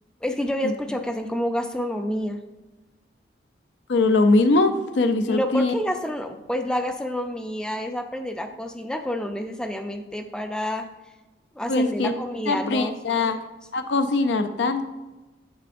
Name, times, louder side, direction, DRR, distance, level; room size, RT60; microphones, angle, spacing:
voice 1, 0.2-2.4 5.2-10.9 11.6-13.4, equal, 5° left, 6 dB, 0.3 m, -29 dB
voice 2, 3.9-5.7 11.7-12.1 12.5-13.4 13.7-14.8, left 3 dB, 75° left, 8 dB, 0.4 m, -21 dB
8.4 x 6.7 x 2.5 m, 1.2 s
head